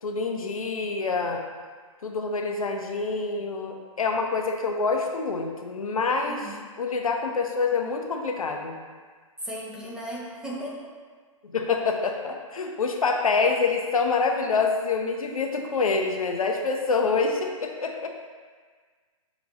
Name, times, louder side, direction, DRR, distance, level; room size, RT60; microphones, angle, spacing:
voice 1, 0.0-1.4 2.0-8.7 11.4-18.1, left 4 dB, 80° left, 3 dB, 0.5 m, -26 dB
voice 2, 6.3-6.6 9.4-10.8, equal, 5° right, -5 dB, 0.6 m, -36 dB
5.9 x 2.9 x 2.6 m, 1.5 s
figure-of-eight pair, 120°, 18 cm